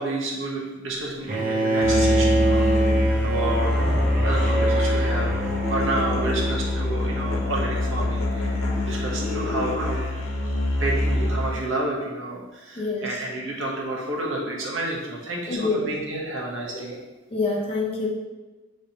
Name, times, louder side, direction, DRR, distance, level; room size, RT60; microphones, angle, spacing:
voice 1, 0.0-3.7 4.2-17.0, right 2 dB, 70° right, -3 dB, 1.0 m, -30 dB
Bowed string instrument, 1.3-7.3, right 2 dB, 40° right, 0.7 m, -26 dB
Musical instrument, 1.8-11.6, left 1 dB, 80° left, 1.0 m, -24 dB
voice 2, 9.3-9.6 12.8-13.2 15.5-15.9 17.3-18.1, left 3 dB, 30° left, -2 dB, 0.7 m, -26 dB
5.3 x 3.3 x 2.8 m, 1.2 s
head